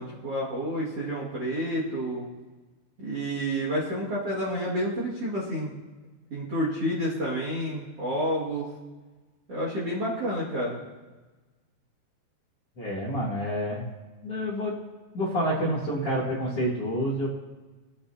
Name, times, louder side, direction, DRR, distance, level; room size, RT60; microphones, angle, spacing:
voice 1, 0.0-2.2 3.0-5.7 6.3-8.6 9.5-10.8, equal, 40° right, -5 dB, 2.4 m, -29 dB
voice 2, 12.8-13.8 14.2-14.7 15.1-17.3, equal, 45° left, -5 dB, 2.3 m, -28 dB
21.5 x 8.6 x 2.8 m, 1.3 s
omnidirectional pair, 5.1 m